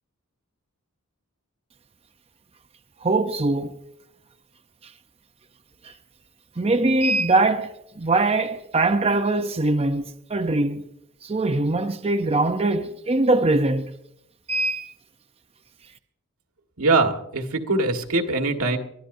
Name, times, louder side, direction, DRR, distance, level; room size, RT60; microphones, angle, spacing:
voice 1, 3.0-3.7 5.8-5.9 6.6-10.9 11.2-13.9 14.5-14.9, right 2 dB, 25° right, 0.6 m, -22 dB
voice 2, 16.8-18.8, right 3 dB, 80° right, 1.7 m, -22 dB
23.0 x 14.5 x 2.7 m
head